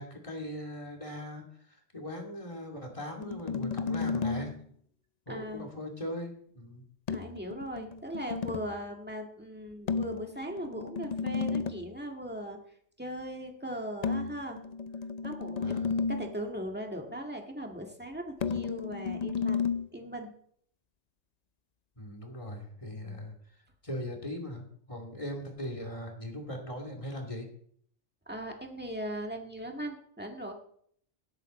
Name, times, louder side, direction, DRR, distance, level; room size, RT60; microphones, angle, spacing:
voice 1, 0.0-4.5 5.3-6.8 15.6-15.9 22.0-23.3 23.8-27.5, left 1 dB, 25° left, 1 dB, 2.6 m, -40 dB
sound 1, 3.2-4.6 7.1-8.8 9.9-11.9 14.0-16.4 18.4-19.9, left 5 dB, 55° left, 0.4 m, -33 dB
voice 2, 5.3-5.7 7.1-12.6 13.0-14.6 15.2-20.3 23.0-23.2 28.3-30.5, equal, 10° right, 2 dB, 1.8 m, -39 dB
18.0 x 8.2 x 4.3 m, 0.64 s
omnidirectional pair, 1.2 m